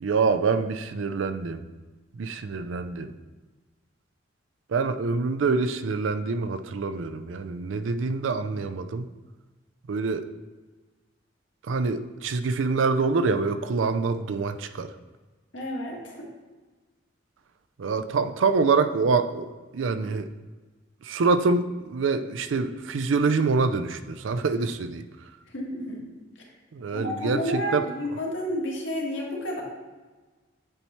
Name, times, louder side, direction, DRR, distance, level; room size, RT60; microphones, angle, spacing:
voice 1, 0.0-1.7 2.1-3.1 4.7-9.1 9.9-10.3 11.7-14.9 17.8-19.5 19.7-20.3 21.0-25.1 26.7-27.9, right 4 dB, 85° right, 10 dB, 0.4 m, -25 dB
voice 2, 15.5-16.3 25.5-26.1 26.9-29.6, equal, 75° left, -2 dB, 1.5 m, -31 dB
8.9 x 3.0 x 4.2 m, 1.3 s
head